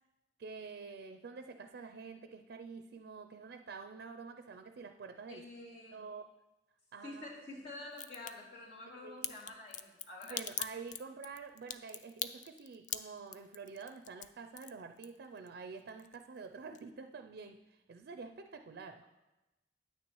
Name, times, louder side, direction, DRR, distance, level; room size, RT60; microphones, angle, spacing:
voice 1, 0.4-5.5 5.9-6.3 6.9-7.3 9.0-9.3 10.2-19.0, right 5 dB, 65° right, 7 dB, 0.4 m, -48 dB
voice 2, 5.3-6.0 7.0-10.4, left 2 dB, 75° left, -5 dB, 2.5 m, -48 dB
Crack, 7.9-8.3 9.2-15.5 15.8-16.5 16.7-16.8, left 10 dB, 45° left, 0.4 m, -41 dB
9.3 x 9.2 x 3.0 m, 1.0 s
head